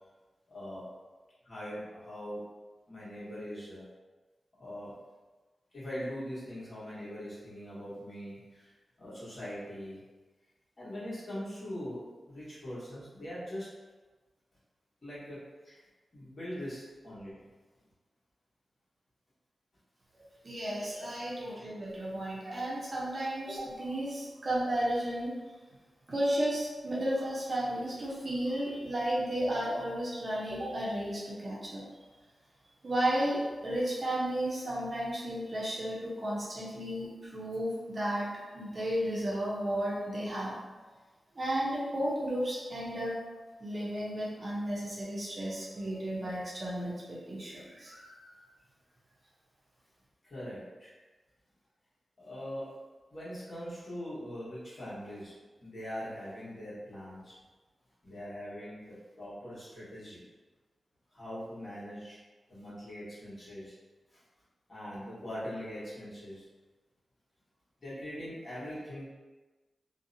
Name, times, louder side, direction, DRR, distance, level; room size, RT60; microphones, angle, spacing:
voice 1, 0.5-0.8 1.4-2.4 2.9-3.8 4.6-5.0 5.7-8.7 9.0-10.0 10.8-13.7 15.0-15.8 16.1-17.4 21.1-21.3 50.2-50.9 52.2-52.8 53.1-55.3 55.6-57.4 58.0-60.2 61.1-62.2 62.5-63.7 64.1-64.2 64.7-66.4 67.8-69.1, equal, 40° left, -10 dB, 1.2 m, -42 dB
voice 2, 20.1-25.6 26.1-32.0 32.8-40.6 41.3-43.2 43.6-48.4, right 1 dB, 40° right, -6 dB, 0.6 m, -33 dB
2.7 x 2.1 x 2.6 m, 1.3 s
wide cardioid pair, 120°, 0 cm